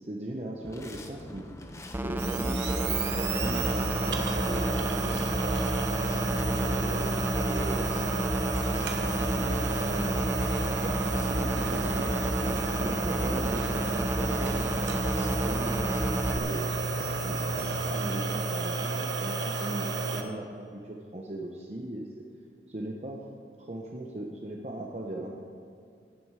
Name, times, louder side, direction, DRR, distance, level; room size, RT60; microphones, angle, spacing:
voice 1, 0.0-1.5 2.0-5.3 6.0-8.3 9.1-11.0 11.7-11.9 12.4-14.9 15.1-16.7 17.2-22.2 22.7-23.2 23.6-25.4, right 1 dB, 40° right, 0 dB, 0.9 m, -38 dB
sound 1, 0.6-17.9, left 1 dB, 15° left, 0.8 m, -45 dB
sound 2, 1.9-16.4, right 1 dB, 10° right, 0.4 m, -31 dB
sound 3, 2.2-20.2, right 3 dB, 90° right, 1.2 m, -31 dB
17.0 x 7.7 x 4.8 m, 2.4 s
head